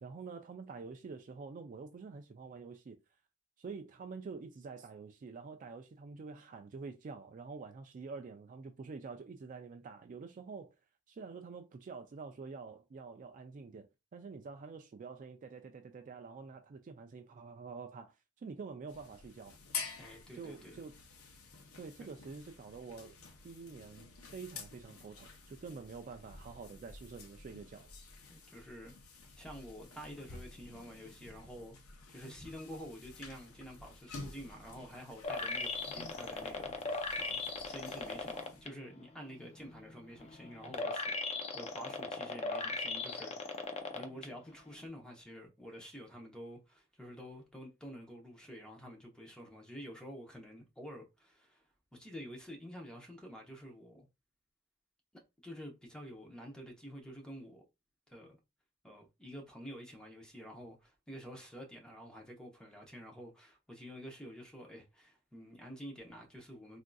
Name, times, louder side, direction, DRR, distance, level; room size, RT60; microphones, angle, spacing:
voice 1, 0.0-3.0 3.6-10.7 11.1-13.9 14.1-19.6 20.3-20.9 21.8-23.2 23.4-27.9, right 4 dB, 40° right, 0.3 m, -47 dB
sound 1, 18.9-38.6, left 4 dB, 80° left, 0.7 m, -50 dB
voice 2, 20.0-20.8 22.0-22.1 28.3-28.9 29.4-31.8 32.1-51.6 51.9-54.1 55.4-57.6 58.1-58.4 58.8-66.8, equal, 5° left, 0.8 m, -49 dB
sound 2, 35.2-38.7 39.1-44.2 44.7-44.8, left 3 dB, 30° left, 0.5 m, -38 dB
3.6 x 2.5 x 2.2 m
head